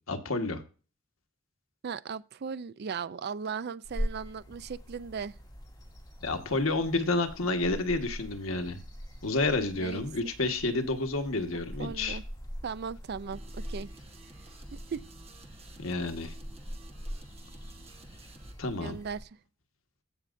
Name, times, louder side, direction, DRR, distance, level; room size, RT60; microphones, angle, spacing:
voice 1, 0.1-0.6 6.2-8.8 9.2-12.2 15.8-16.3 18.6-19.0, left 2 dB, 90° left, 1.5 m, -30 dB
voice 2, 1.8-5.4 9.8-10.0 11.5-12.2 12.6-13.9 14.7-15.0 18.8-19.3, right 6 dB, 50° right, 0.4 m, -37 dB
sound 1, 3.8-19.2, equal, 20° left, 2.4 m, -42 dB
sound 2, 13.3-18.6, right 3 dB, 30° right, 1.2 m, -53 dB
15.5 x 6.2 x 2.6 m
head